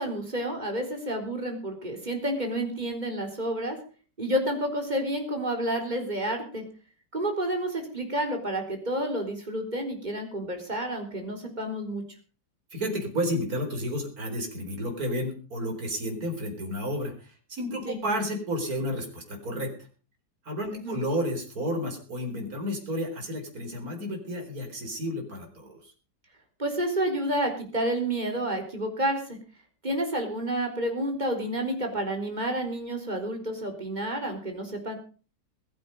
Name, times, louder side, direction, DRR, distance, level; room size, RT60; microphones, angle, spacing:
voice 1, 0.0-3.8 4.2-6.6 7.1-12.0 17.8-18.0 20.7-21.0 26.6-29.2 29.8-35.0, right 1 dB, 25° right, 4 dB, 4.1 m, -30 dB
voice 2, 12.7-19.7 20.4-25.9, equal, 55° right, 2 dB, 4.6 m, -31 dB
21.0 x 9.3 x 5.3 m, 0.38 s
omnidirectional pair, 1.9 m